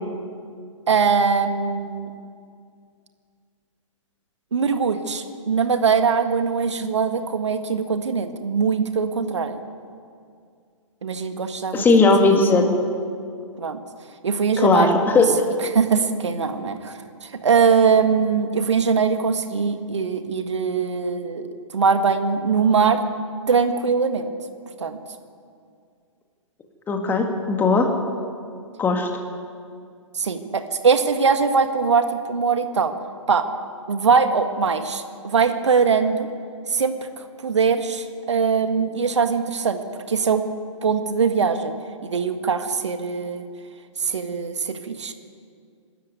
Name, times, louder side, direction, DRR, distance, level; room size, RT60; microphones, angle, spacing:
voice 1, 0.9-2.1 4.5-9.6 11.0-11.9 12.2-12.3 13.6-13.8 14.2-15.2 15.6-21.5 21.7-23.0 23.5-24.3 24.8-25.0 30.2-32.9 33.3-33.5 33.9-36.3 36.7-39.8 40.1-40.4 40.8-41.7 42.0-43.5 44.0-45.1, right 5 dB, 60° right, 8 dB, 1.8 m, -21 dB
voice 2, 11.7-12.6 14.6-15.3 26.9-27.9 28.8-29.1, left 3 dB, 10° left, 4 dB, 2.1 m, -17 dB
25.0 x 13.0 x 9.5 m, 2.3 s
figure-of-eight pair, 125°, 17 cm